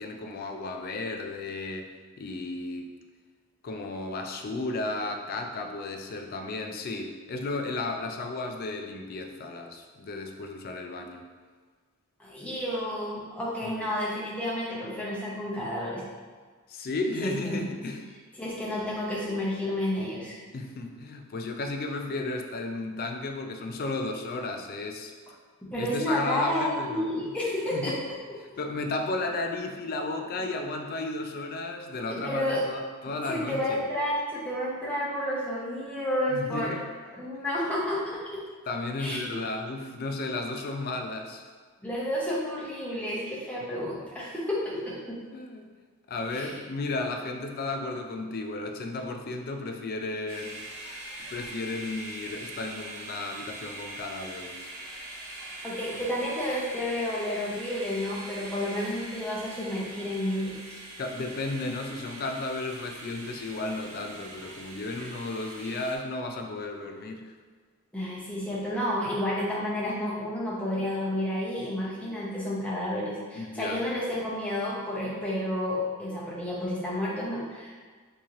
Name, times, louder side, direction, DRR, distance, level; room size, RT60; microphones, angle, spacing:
voice 1, 0.0-1.9 2.2-2.9 3.6-11.2 13.6-13.9 16.7-18.0 20.5-25.1 25.8-27.3 27.7-28.0 28.6-33.8 36.3-36.8 38.7-41.5 45.3-45.7 46.1-50.6 51.3-54.7 61.0-67.3 73.3-73.8, left 2 dB, 45° left, 4 dB, 0.3 m, -34 dB
voice 2, 12.2-16.0 17.2-17.6 18.4-20.4 25.7-27.9 32.1-32.6 33.3-36.8 37.1-38.4 39.0-39.4 41.8-45.2 46.3-46.5 55.6-60.5 67.9-77.9, left 1 dB, 5° left, -6 dB, 0.7 m, -31 dB
sound 1, 50.3-66.0, right 1 dB, 70° right, 0.6 m, -42 dB
3.0 x 2.7 x 3.6 m, 1.5 s
head